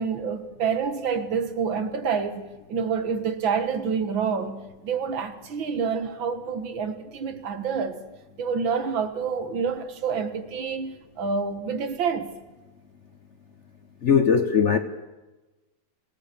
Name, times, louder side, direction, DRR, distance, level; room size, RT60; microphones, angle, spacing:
voice 1, 0.0-8.0 8.4-12.3, right 6 dB, 75° right, 2.2 m, -28 dB
voice 2, 14.0-14.8, left 6 dB, 50° left, 1.0 m, -19 dB
26.0 x 17.0 x 6.9 m
omnidirectional pair, 2.2 m